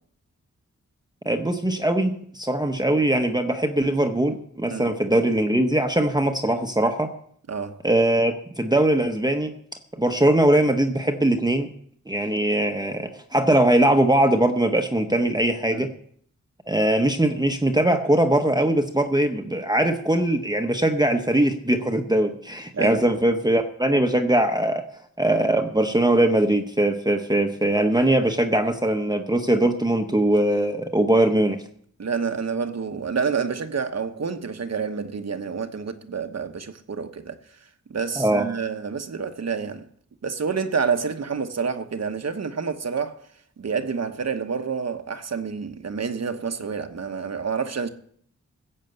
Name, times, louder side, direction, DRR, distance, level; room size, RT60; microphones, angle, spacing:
voice 1, 1.2-7.1 7.8-9.5 9.9-11.7 12.1-15.9 16.7-24.8 25.2-31.6 38.2-38.5, right 1 dB, 15° right, 1.0 m, -21 dB
voice 2, 7.5-7.8 15.7-15.9 22.7-23.2 32.0-37.4 37.9-39.9 40.2-43.2 43.6-47.9, right 5 dB, 60° right, 1.1 m, -28 dB
16.0 x 6.6 x 7.9 m
wide cardioid pair, 105°, 30 cm